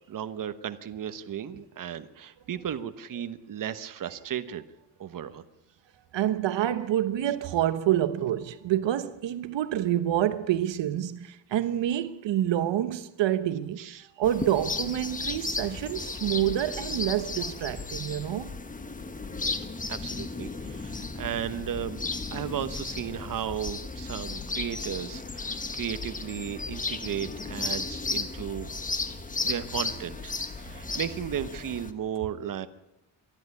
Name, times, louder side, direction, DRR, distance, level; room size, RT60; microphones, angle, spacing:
voice 1, 0.1-4.6 5.0-5.4 13.8-14.1 19.9-22.0 22.3-28.7 29.4-32.7, right 9 dB, 45° right, 1.1 m, -35 dB
voice 2, 6.1-13.8 14.2-18.5, right 12 dB, 75° right, 1.1 m, -27 dB
sound 1, 14.2-31.9, left 3 dB, 20° left, 1.3 m, -34 dB
25.5 x 10.5 x 9.8 m
cardioid pair, 140°, 44 cm